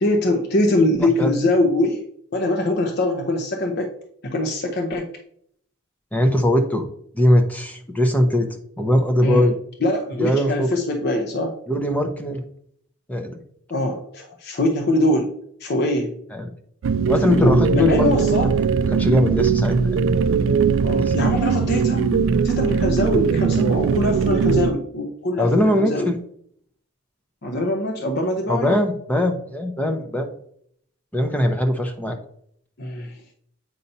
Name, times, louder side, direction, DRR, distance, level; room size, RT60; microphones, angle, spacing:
voice 1, 0.0-2.0 2.3-3.9 4.2-5.1 9.2-9.5 9.8-11.6 13.7-15.3 15.6-16.1 17.3-18.5 20.8-22.2 22.4-26.1 27.4-28.8 32.8-33.2, left 1 dB, 50° left, 3 dB, 0.7 m, -22 dB
voice 2, 6.1-6.9 7.1-8.5 8.8-9.5 10.2-10.7 11.7-12.4 13.1-13.4 16.3-16.5 17.1-18.5 18.9-19.8 21.0-21.1 25.4-26.2 28.5-30.3 31.1-32.2, left 1 dB, 5° left, 5 dB, 0.7 m, -20 dB
sound 1, 16.8-24.7, right 6 dB, 65° right, 0.3 m, -20 dB
8.2 x 2.8 x 5.4 m, 0.66 s
head